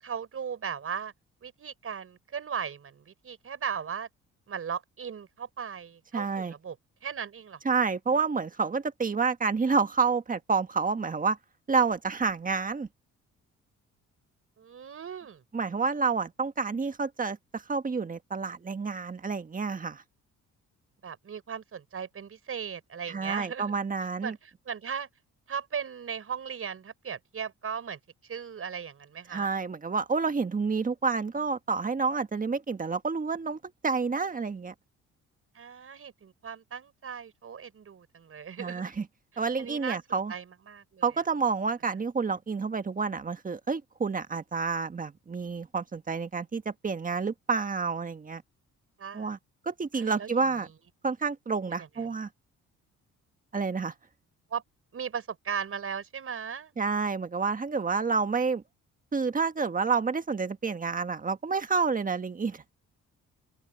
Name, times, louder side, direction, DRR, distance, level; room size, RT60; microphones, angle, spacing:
voice 1, 0.0-1.1 1.4-4.1 4.5-6.8 7.0-7.8 14.6-15.4 21.0-23.8 24.2-25.1 25.5-28.0 28.3-29.5 35.5-38.8 39.3-41.0 49.0-49.3 49.9-50.7 51.8-51.9 54.5-54.6 54.9-56.7, right 7 dB, 45° right, 5.2 m, -37 dB
voice 2, 6.1-6.5 7.6-11.4 11.7-12.9 15.5-20.0 23.1-24.4 29.3-34.7 38.6-39.1 39.4-40.3 41.0-48.4 49.1-49.4 49.6-50.7 51.0-52.3 53.5-53.9 56.8-58.6 59.1-62.6, right 5 dB, 25° right, 1.6 m, -29 dB
open air
cardioid pair, 90°, 30 cm